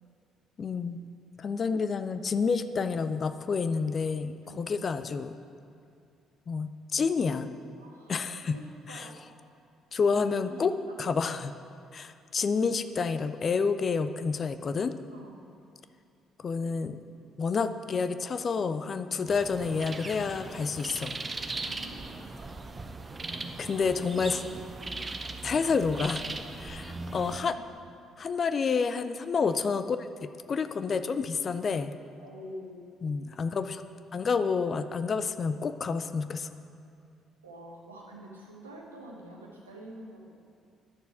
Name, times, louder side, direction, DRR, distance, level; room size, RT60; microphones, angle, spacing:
voice 1, 0.6-1.0 1.4-5.4 6.5-7.5 8.1-8.6 8.9-9.1 9.9-10.7 11.0-11.5 11.9-14.9 16.4-17.0 17.4-21.2 23.6-24.4 25.4-26.3 26.6-27.6 28.2-31.9 33.0-33.8 34.1-36.5, left 5 dB, 40° left, 11 dB, 0.5 m, -29 dB
voice 2, 7.8-8.1 8.5-9.2 10.1-10.5 10.9-11.5 13.5-13.6 15.1-15.4 19.7-20.0 21.7-22.6 27.3-27.6 32.2-33.0 37.4-40.3, right 1 dB, 80° right, -1 dB, 1.1 m, -47 dB
sound 1, 19.3-27.4, right 3 dB, 30° right, 0.7 m, -39 dB
10.5 x 6.9 x 6.2 m, 2.5 s
figure-of-eight pair, 45°, 0 cm